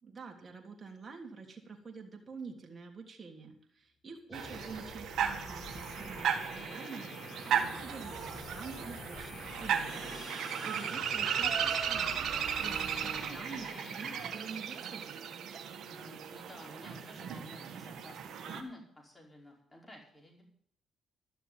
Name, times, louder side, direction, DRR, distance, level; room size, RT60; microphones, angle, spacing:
voice 1, 0.0-10.0 10.6-15.2, right 5 dB, 40° right, 1 dB, 3.2 m, -47 dB
sound 1, 4.3-14.3, left 3 dB, 45° left, 4.0 m, -47 dB
sound 2, 4.3-18.6, right 8 dB, 70° right, 1.8 m, -36 dB
voice 2, 15.8-20.4, left 1 dB, 15° left, -1 dB, 5.4 m, -52 dB
13.0 x 6.8 x 9.6 m, 0.66 s
supercardioid pair, 60°, 0 cm